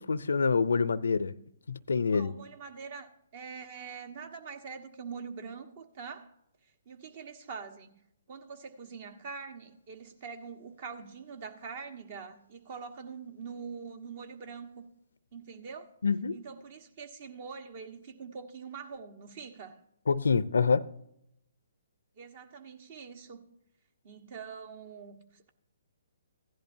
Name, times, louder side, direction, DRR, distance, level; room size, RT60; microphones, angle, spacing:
voice 1, 0.0-1.3 1.7-2.3 16.0-16.4 20.1-20.9, left 5 dB, 75° left, 0.5 m, -26 dB
voice 2, 2.1-6.3 6.9-8.0 8.3-14.8 15.3-15.9 16.3-19.8 22.2-23.4 24.0-25.5, right 5 dB, 45° right, 1.3 m, -44 dB
15.5 x 11.0 x 2.7 m
figure-of-eight pair, 135°, 0 cm